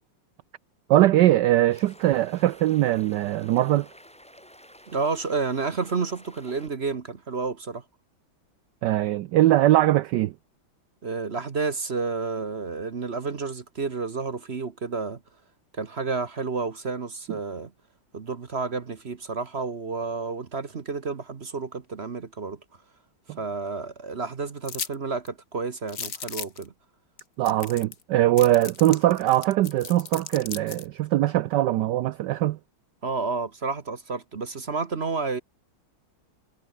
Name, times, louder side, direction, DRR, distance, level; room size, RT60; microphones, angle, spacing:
voice 1, 0.9-3.9 8.8-10.3 23.3-23.4 27.4-32.6, right 14 dB, 70° right, 1.1 m, -21 dB
sound 1, 1.7-6.7, equal, 5° left, 4.3 m, -51 dB
voice 2, 4.9-7.8 11.0-15.2 15.7-17.7 18.1-22.6 23.4-26.7 33.0-35.4, right 4 dB, 35° right, 1.2 m, -30 dB
sound 2, 24.7-24.9 25.3-25.4 25.9-26.6 27.2-27.3 27.5-28.0 28.4-30.9, left 6 dB, 40° left, 1.8 m, -36 dB
omnidirectional pair, 2.3 m